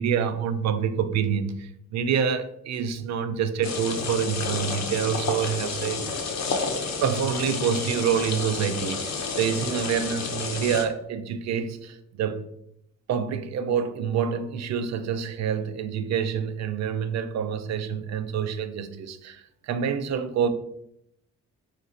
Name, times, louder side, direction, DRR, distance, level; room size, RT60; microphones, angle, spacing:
voice 1, 0.0-6.2 7.0-12.4 13.1-20.5, right 7 dB, 65° right, 10 dB, 0.5 m, -27 dB
sound 1, 3.6-10.8, left 4 dB, 65° left, 0.8 m, -30 dB
3.9 x 2.6 x 4.1 m, 0.76 s
cardioid pair, 90°, 29 cm